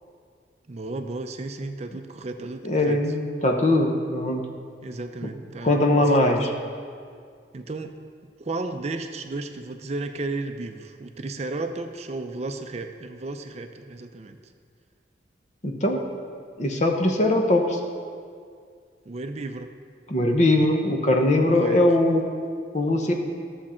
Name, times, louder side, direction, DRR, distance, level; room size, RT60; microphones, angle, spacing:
voice 1, 0.7-3.0 4.8-6.4 7.5-7.9 8.4-14.4 19.1-19.7 21.5-21.8, right 2 dB, 40° right, 7 dB, 0.5 m, -34 dB
voice 2, 2.6-4.4 5.6-6.5 15.6-16.0 16.6-17.8 20.1-22.2 22.7-23.1, left 1 dB, 40° left, 3 dB, 1.0 m, -21 dB
12.5 x 7.2 x 4.3 m, 2.1 s
head